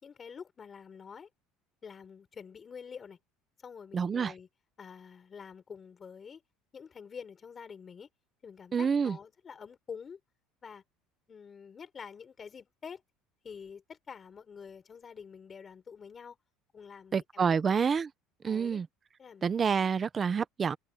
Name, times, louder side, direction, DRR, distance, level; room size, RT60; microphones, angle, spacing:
voice 1, 0.0-1.3 1.8-3.2 3.6-4.5 4.8-6.4 6.7-8.1 8.4-10.2 10.6-10.8 11.3-13.0 13.4-16.4 16.7-17.8 18.4-18.8 19.2-19.5 19.8-19.9, left 6 dB, 25° left, 4.4 m, -47 dB
voice 2, 3.9-4.3 8.7-9.2 17.1-18.1 18.4-18.9 19.4-20.8, right 6 dB, 25° right, 0.9 m, -28 dB
cardioid pair, 150°, 0 cm